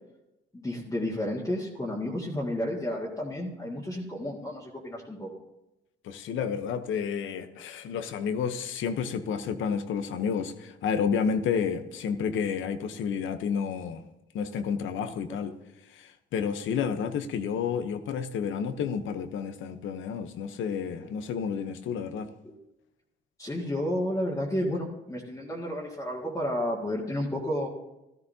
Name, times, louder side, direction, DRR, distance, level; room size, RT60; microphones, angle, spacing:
voice 1, 0.5-5.3 22.4-22.6 23.4-27.7, left 1 dB, 15° left, 1.8 m, -31 dB
voice 2, 6.0-14.0 14.3-15.6 15.9-22.3, left 6 dB, 80° left, 0.9 m, -30 dB
13.5 x 13.0 x 2.8 m
cardioid pair, 90°, 20 cm